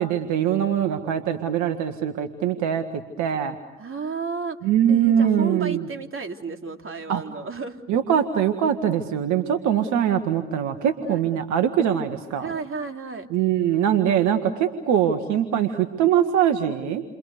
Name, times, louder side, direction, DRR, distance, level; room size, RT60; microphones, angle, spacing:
voice 1, 0.0-3.6 4.6-5.9 7.1-7.2 7.9-12.5 13.3-17.0, right 9 dB, 80° right, 7 dB, 1.8 m, -22 dB
voice 2, 3.8-4.6 4.9-7.8 11.0-11.2 12.4-13.3, right 4 dB, 45° right, 5 dB, 3.2 m, -32 dB
29.5 x 25.0 x 6.7 m, 0.97 s
hypercardioid pair, 50°, 29 cm